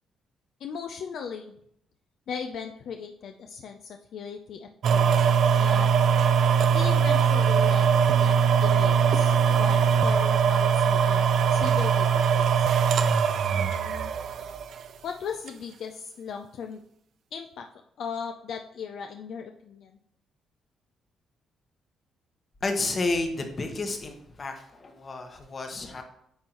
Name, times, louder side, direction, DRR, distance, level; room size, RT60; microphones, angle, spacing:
voice 1, 0.6-1.5 2.3-5.3 5.5-5.9 6.7-12.7 13.5-14.1 15.0-16.8 17.3-17.7 18.0-19.9, left 6 dB, 70° left, 5 dB, 0.4 m, -38 dB
sound 1, 4.8-14.9 15.5-15.6, right 6 dB, 65° right, 0.4 m, -21 dB
voice 2, 22.6-26.0, left 3 dB, 35° left, 5 dB, 1.1 m, -31 dB
9.3 x 3.8 x 3.0 m, 0.74 s
cardioid pair, 90°, 0 cm